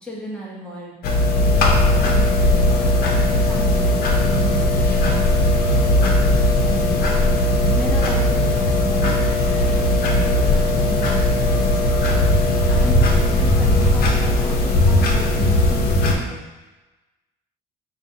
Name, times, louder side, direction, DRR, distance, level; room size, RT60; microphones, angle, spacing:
voice 1, 0.0-0.9 1.4-3.9 4.2-5.0 5.4-6.1 6.6-7.2 7.8-12.0 12.7-16.4, right 1 dB, 5° left, -6 dB, 0.9 m, -34 dB
sound 1, 1.0-16.2, left 1 dB, 65° left, 0.6 m, -18 dB
3.9 x 2.4 x 3.9 m, 1.1 s
cardioid pair, 110°, 17 cm